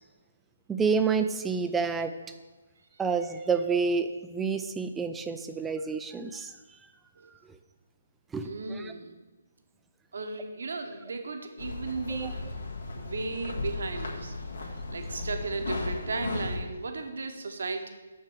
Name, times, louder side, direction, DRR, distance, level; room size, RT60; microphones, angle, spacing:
voice 1, 0.7-2.1 3.0-6.5 8.3-8.9 12.1-12.3, right 5 dB, 10° right, 8 dB, 0.5 m, -29 dB
voice 2, 8.4-9.2 10.1-12.4 12.9-14.3 14.7-17.9, right 3 dB, 60° right, 5 dB, 1.2 m, -35 dB
sound 1, 11.6-16.6, left 3 dB, 65° left, 1.8 m, -36 dB
6.6 x 6.5 x 6.3 m, 1.2 s
figure-of-eight pair, 140°, 0 cm